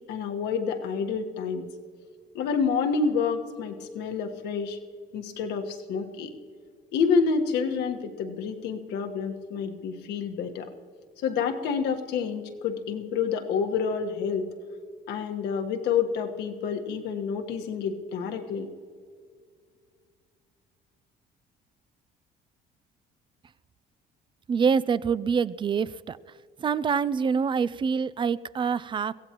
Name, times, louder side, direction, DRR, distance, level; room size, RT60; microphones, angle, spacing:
voice 1, 0.1-1.7 2.3-4.8 5.1-6.3 6.9-10.7 11.2-14.4 15.1-18.7, left 6 dB, 80° left, 4 dB, 1.4 m, -28 dB
voice 2, 24.5-26.2 26.6-29.1, right 6 dB, 30° right, 17 dB, 0.4 m, -25 dB
23.0 x 16.0 x 3.0 m, 2.1 s
cardioid pair, 110°, 17 cm